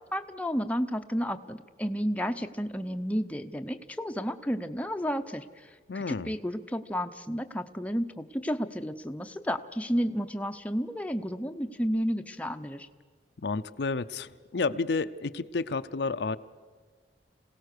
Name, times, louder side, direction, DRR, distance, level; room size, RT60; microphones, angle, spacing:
voice 1, 0.1-5.4 5.9-12.9, equal, 10° left, 7 dB, 0.6 m, -31 dB
voice 2, 5.9-6.3 13.4-16.4, left 4 dB, 70° left, 11 dB, 0.6 m, -31 dB
26.5 x 17.0 x 6.6 m, 1.5 s
head